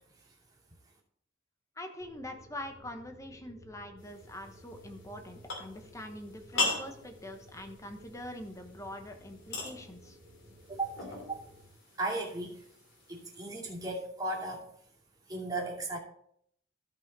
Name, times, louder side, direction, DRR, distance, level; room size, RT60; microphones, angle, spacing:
voice 1, 1.8-10.2, left 1 dB, 15° left, 5 dB, 1.0 m, -44 dB
sound 1, 2.0-11.7, equal, 50° right, 2.1 m, -55 dB
sound 2, 4.0-13.5, left 3 dB, 75° left, 2.9 m, -40 dB
voice 2, 10.7-11.4 12.0-12.6 13.1-14.7 15.3-16.0, right 2 dB, 20° right, -3 dB, 2.4 m, -36 dB
13.0 x 5.7 x 4.1 m, 0.69 s
head